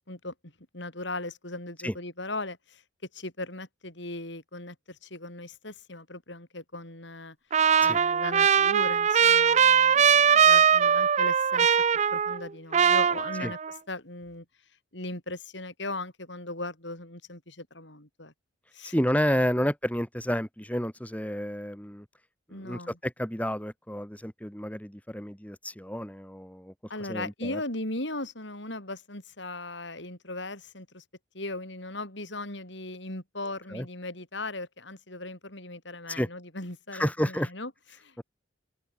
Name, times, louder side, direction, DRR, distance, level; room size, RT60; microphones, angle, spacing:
voice 1, 0.7-2.8 3.1-7.4 7.8-11.7 12.1-13.6 13.9-14.4 14.9-18.3 18.7-18.9 22.5-23.0 26.9-31.0 31.3-38.2, left 2 dB, 60° left, 6.4 m, -38 dB
Trumpet, 7.5-12.5 12.7-13.7, right 7 dB, 35° right, 0.4 m, -21 dB
voice 2, 18.9-22.1 22.5-26.7 27.1-27.6 33.7-33.9 36.1-36.3 36.9-37.5, equal, 5° left, 3.9 m, -30 dB
head